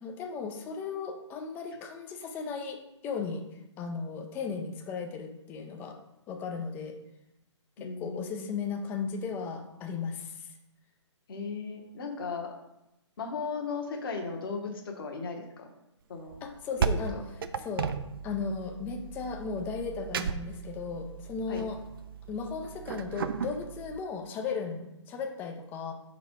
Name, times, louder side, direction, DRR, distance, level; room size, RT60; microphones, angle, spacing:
voice 1, 0.0-3.4 3.8-6.0 6.3-7.0 7.8-10.5 16.4-17.2 17.6-17.9 18.2-21.8 22.3-25.9, left 5 dB, 10° left, 5 dB, 0.4 m, -36 dB
voice 2, 7.8-8.5 11.3-12.5 13.2-15.7 16.1-16.4 17.1-17.2 21.5-21.6, left 4 dB, 45° left, 2 dB, 1.2 m, -36 dB
sound 1, 16.3-24.0, right 6 dB, 50° right, 0.4 m, -35 dB
5.0 x 4.2 x 4.5 m, 0.88 s
figure-of-eight pair, 140°, 16 cm